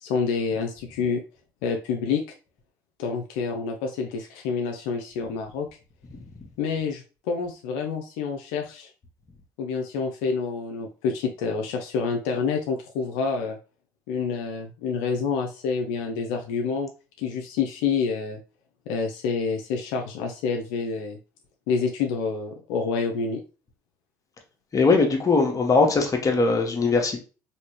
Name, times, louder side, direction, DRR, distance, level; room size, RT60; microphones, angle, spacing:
voice 1, 0.0-1.2 1.6-2.2 3.0-5.7 6.6-8.9 9.6-13.6 14.1-16.9 17.2-18.4 18.9-21.2 21.7-23.4, left 5 dB, 80° left, 0.4 m, -28 dB
voice 2, 24.7-27.2, left 4 dB, 35° left, 1.0 m, -20 dB
3.1 x 2.7 x 3.0 m
hypercardioid pair, 65°, 10 cm